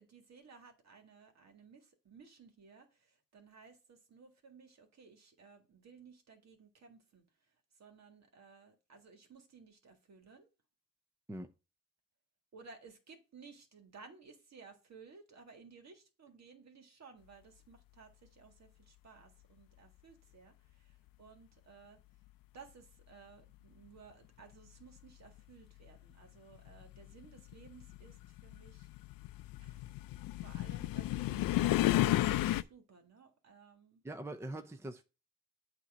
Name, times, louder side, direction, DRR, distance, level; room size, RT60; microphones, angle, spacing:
voice 1, 0.0-7.2 7.8-10.5 12.5-22.0 22.5-28.9 29.6-29.8 30.4-34.0, right 5 dB, 50° right, 1.9 m, -58 dB
sound 1, 25.4-25.5 26.5-32.6, left 15 dB, 80° left, 0.5 m, -32 dB
voice 2, 34.0-35.0, right 1 dB, 10° right, 0.6 m, -42 dB
8.3 x 3.0 x 6.2 m
cardioid pair, 100°, 34 cm